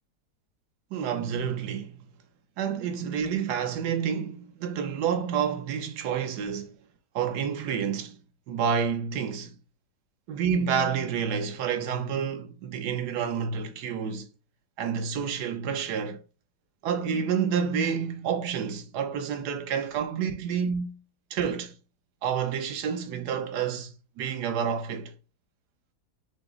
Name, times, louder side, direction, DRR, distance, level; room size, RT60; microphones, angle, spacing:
voice 1, 0.9-2.0 2.6-6.7 7.1-8.2 8.5-9.5 10.3-14.3 14.8-16.2 16.8-21.0 21.3-21.7 22.2-25.1, right 7 dB, 85° right, 1.3 m, -29 dB
5.9 x 2.0 x 3.7 m
omnidirectional pair, 1.7 m